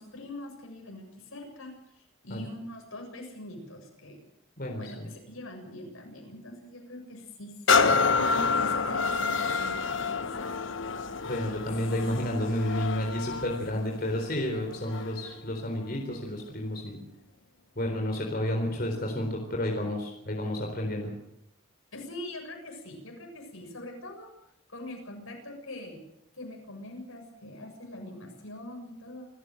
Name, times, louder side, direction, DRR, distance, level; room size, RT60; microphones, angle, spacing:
voice 1, 0.0-1.7 2.2-4.2 4.8-7.5 7.8-10.4 11.7-12.3 21.9-24.3 24.7-26.0 26.4-29.3, left 1 dB, 80° left, 2 dB, 7.3 m, -43 dB
voice 2, 4.6-5.1 11.2-17.0 17.8-21.1, left 1 dB, 45° left, 1 dB, 4.0 m, -31 dB
sound 1, 7.7-15.3 15.8-16.0, left 4 dB, 65° left, 1.0 m, -28 dB
28.0 x 14.0 x 7.9 m, 0.80 s
head